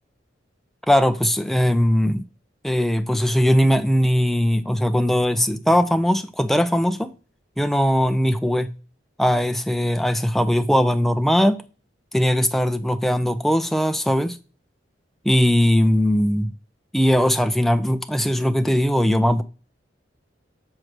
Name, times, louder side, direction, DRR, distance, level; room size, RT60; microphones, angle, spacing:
voice 1, 0.9-2.2 2.6-7.1 7.6-8.7 9.2-11.6 12.1-14.4 15.3-16.5 16.9-19.4, equal, ahead, 0.4 m, -19 dB
6.4 x 3.1 x 5.9 m
head